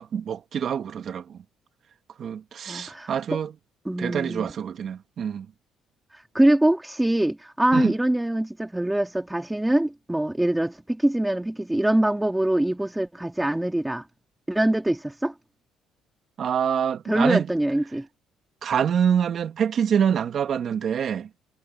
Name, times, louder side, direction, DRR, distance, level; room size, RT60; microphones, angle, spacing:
voice 1, 0.0-1.4 2.2-3.5 4.0-5.5 7.7-7.9 16.4-17.5 18.6-21.3, right 8 dB, 45° right, 1.7 m, -25 dB
voice 2, 2.7-3.4 3.8-4.5 6.3-14.1 14.5-15.3 17.1-18.1, right 1 dB, 5° right, 2.7 m, -23 dB
cardioid pair, 125°, 0 cm